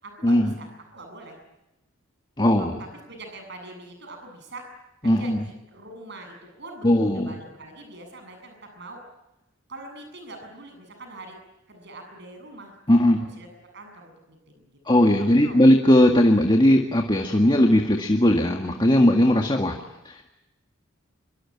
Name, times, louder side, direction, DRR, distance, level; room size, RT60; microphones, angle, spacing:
voice 1, 0.0-1.4 2.6-2.7 3.1-4.6 5.0-9.0 9.7-11.4 11.7-12.7 13.2-13.5 13.7-14.8 15.2-15.6 17.2-17.5, right 2 dB, 60° right, 5 dB, 7.6 m, -43 dB
voice 2, 2.4-2.7 5.0-5.4 6.8-7.3 12.9-13.2 14.9-19.8 20.1-20.3, left 1 dB, 25° left, 3 dB, 1.9 m, -18 dB
26.0 x 23.5 x 8.7 m, 0.93 s
head